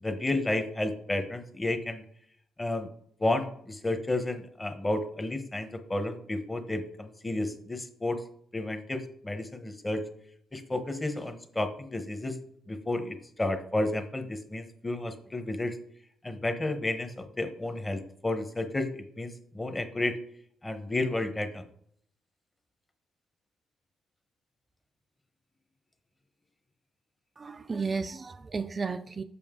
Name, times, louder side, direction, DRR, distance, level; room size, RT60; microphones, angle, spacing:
voice 1, 0.0-2.0 2.6-2.9 3.2-8.2 8.5-10.0 10.5-12.4 12.7-15.8 16.2-20.2 20.6-21.6, left 2 dB, 15° left, 8 dB, 0.9 m, -31 dB
voice 2, 27.4-29.2, right 4 dB, 30° right, 8 dB, 0.4 m, -33 dB
7.0 x 5.2 x 3.7 m, 0.66 s
cardioid pair, 90°, 0 cm